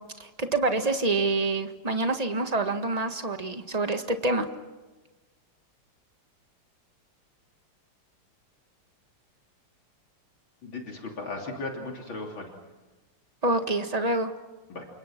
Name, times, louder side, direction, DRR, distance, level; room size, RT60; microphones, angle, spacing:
voice 1, 0.2-4.5 13.4-14.3, right 2 dB, 20° right, 6 dB, 1.5 m, -26 dB
voice 2, 10.6-12.5 14.7-14.9, left 2 dB, 65° left, 1 dB, 3.9 m, -36 dB
29.0 x 26.0 x 6.0 m, 1.2 s
omnidirectional pair, 2.3 m